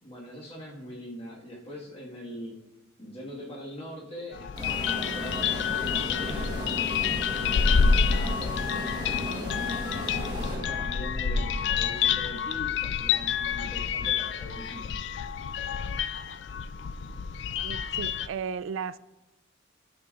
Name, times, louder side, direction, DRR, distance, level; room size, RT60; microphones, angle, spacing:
voice 1, 0.0-2.6 3.0-9.2 9.7-14.8, equal, 30° left, 1.7 m, -42 dB
sound 1, 4.3-18.3, left 6 dB, 65° left, 0.4 m, -28 dB
sound 2, 4.6-11.2, equal, 25° right, 1.4 m, -36 dB
voice 2, 17.6-19.0, right 6 dB, 85° right, 0.3 m, -35 dB
12.5 x 7.0 x 2.5 m
head